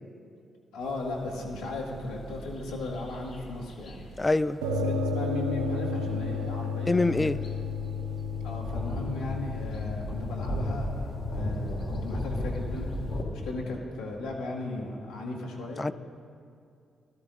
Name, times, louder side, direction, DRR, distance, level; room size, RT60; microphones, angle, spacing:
voice 1, 0.7-4.0 4.8-7.4 8.4-12.9 13.3-15.9, left 2 dB, 80° left, -2 dB, 1.8 m, -36 dB
sound 1, 0.8-13.2, equal, 60° left, 2.2 m, -37 dB
voice 2, 4.2-4.6 6.9-7.4 15.8-15.9, left 2 dB, 20° left, 14 dB, 0.4 m, -24 dB
sound 2, 4.6-13.7, left 4 dB, 80° right, 0.8 m, -34 dB
18.5 x 13.0 x 2.6 m, 2.4 s
hypercardioid pair, 45°, 0 cm